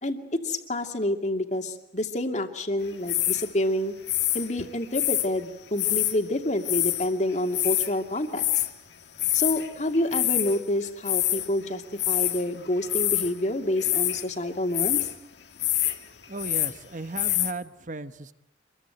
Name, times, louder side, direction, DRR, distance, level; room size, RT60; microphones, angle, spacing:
voice 1, 0.0-3.9 4.3-8.6 9.3-15.1, left 1 dB, 40° left, 5 dB, 2.5 m, -28 dB
sound 1, 3.1-3.5 4.1-5.3 5.8-6.2 6.6-7.1 7.3-7.9 8.3-8.7 9.2-9.7 9.9-10.6 11.0-11.5 12.0-12.4 12.8-13.3 13.8-14.2 14.7-15.1 15.6-16.0 16.2-16.8 17.2-17.5, left 14 dB, 70° left, 1.8 m, -25 dB
voice 2, 16.3-18.3, right 2 dB, 45° right, 12 dB, 1.1 m, -36 dB
26.5 x 22.5 x 9.2 m, 0.81 s
head